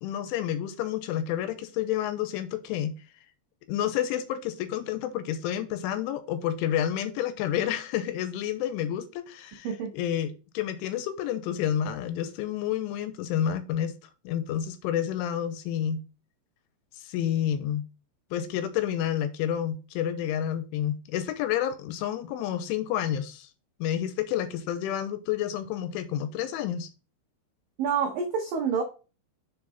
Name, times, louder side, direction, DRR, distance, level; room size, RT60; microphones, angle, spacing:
voice 1, 0.0-3.0 3.7-13.9 14.2-16.0 17.0-17.8 18.3-23.5 23.8-26.9, left 10 dB, 85° left, 3.2 m, -29 dB
voice 2, 27.8-28.8, right 6 dB, 85° right, 1.9 m, -27 dB
6.7 x 4.9 x 4.1 m
omnidirectional pair, 5.5 m